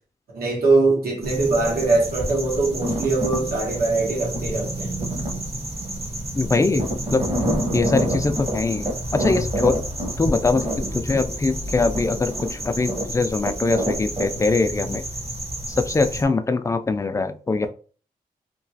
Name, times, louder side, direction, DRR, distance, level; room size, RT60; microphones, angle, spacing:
voice 1, 0.3-5.0, right 3 dB, 85° right, 1.2 m, -22 dB
sound 1, 1.2-16.2, right 1 dB, 40° right, 0.9 m, -28 dB
voice 2, 6.4-7.3 7.7-9.9 10.2-15.0 15.7-17.7, left 3 dB, 20° left, 0.3 m, -22 dB
3.0 x 2.2 x 2.7 m
cardioid pair, 65°, 15 cm